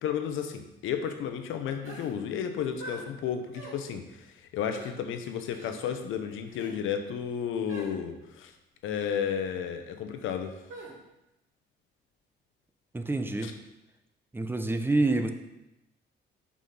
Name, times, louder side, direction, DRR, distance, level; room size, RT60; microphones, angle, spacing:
voice 1, 0.0-8.5 8.8-10.6 13.4-13.5, left 8 dB, 85° left, 7 dB, 0.8 m, -33 dB
sound 1, 1.8-2.1 2.8-3.0 3.5-3.8 4.7-4.9 5.5-5.7 6.5-6.7 7.7-7.9 8.9-9.1 10.7-10.9, right 1 dB, 80° right, 2.7 m, -43 dB
voice 2, 12.9-13.5 14.3-15.3, right 2 dB, 10° right, 7 dB, 0.7 m, -27 dB
5.8 x 5.0 x 5.4 m, 0.94 s
cardioid pair, 90°, 20 cm